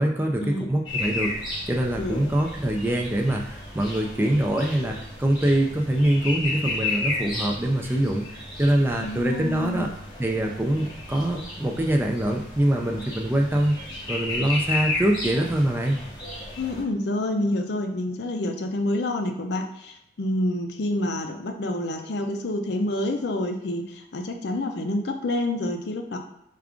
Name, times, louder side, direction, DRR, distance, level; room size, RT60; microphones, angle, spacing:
voice 1, 0.0-9.9 10.2-13.8 14.1-16.0, right 1 dB, 10° right, 1 dB, 0.3 m, -24 dB
sound 1, 0.9-16.8, left 2 dB, 20° left, 0.9 m, -33 dB
voice 2, 9.0-9.9 16.6-26.2, left 1 dB, 60° left, 5 dB, 0.5 m, -28 dB
4.6 x 2.4 x 3.6 m, 0.80 s
head